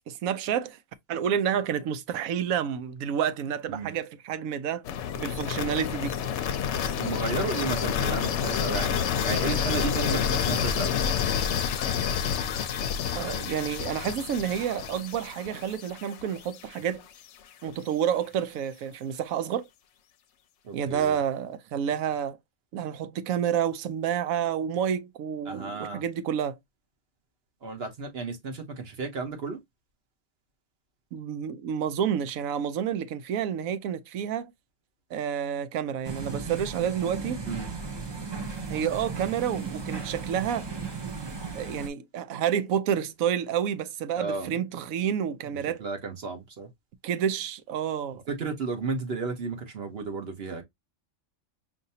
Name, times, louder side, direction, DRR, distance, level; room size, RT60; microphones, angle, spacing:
voice 1, 0.1-0.8 1.1-4.9 5.2-6.1 13.1-17.0 17.6-19.7 20.7-22.4 22.7-26.6 31.1-34.5 35.1-37.4 38.7-40.7 41.5-45.8 47.0-48.2, right 8 dB, 85° right, 1.0 m, -29 dB
sound 1, 4.8-16.8, left 8 dB, 65° left, 0.8 m, -29 dB
voice 2, 7.0-9.0 9.2-10.9 20.6-21.2 25.5-26.0 27.6-29.6 37.5-37.7 44.2-44.5 45.8-46.7 48.3-50.6, right 4 dB, 50° right, 1.2 m, -33 dB
sound 2, 36.0-41.9, right 4 dB, 30° right, 0.5 m, -36 dB
5.1 x 2.7 x 2.7 m
omnidirectional pair, 1.4 m